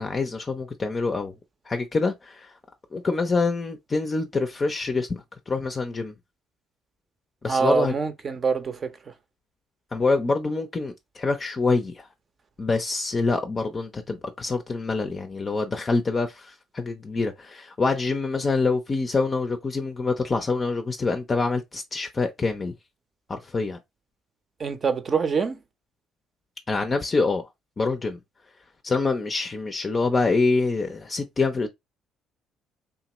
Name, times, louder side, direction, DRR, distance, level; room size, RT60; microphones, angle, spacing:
voice 1, 0.0-1.3 1.7-2.5 2.9-6.1 7.4-7.9 9.9-12.0 12.6-22.7 23.3-23.8 26.7-27.5 27.8-28.2 28.8-31.7, left 3 dB, 35° left, 0.5 m, -26 dB
voice 2, 7.5-8.9 24.6-25.6, right 5 dB, 40° right, 0.6 m, -24 dB
2.9 x 2.4 x 2.9 m
hypercardioid pair, 55°, 0 cm